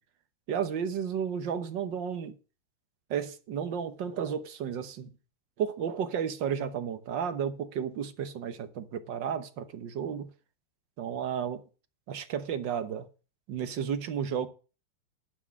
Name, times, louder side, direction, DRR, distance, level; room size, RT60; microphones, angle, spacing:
voice 1, 0.5-2.3 3.1-5.1 5.6-10.3 11.0-11.6 12.1-13.1 13.5-14.5, right 8 dB, 70° right, 1.7 m, -32 dB
11.0 x 6.0 x 7.2 m
omnidirectional pair, 2.1 m